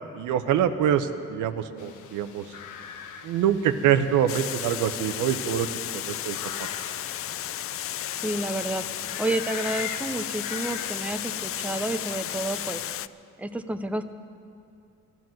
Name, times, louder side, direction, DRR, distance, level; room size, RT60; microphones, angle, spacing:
voice 1, 0.1-2.5 3.2-5.7 5.9-6.4, right 9 dB, 85° right, 9 dB, 0.8 m, -25 dB
sound 1, 1.8-12.7, left 8 dB, 80° left, 1.0 m, -42 dB
Water, 4.3-13.1, left 11 dB, 50° left, 0.4 m, -33 dB
voice 2, 8.2-8.8 9.2-12.8 13.4-14.1, right 1 dB, 5° right, 8 dB, 0.7 m, -30 dB
13.5 x 12.5 x 7.7 m, 2.5 s
cardioid pair, 90°, 30 cm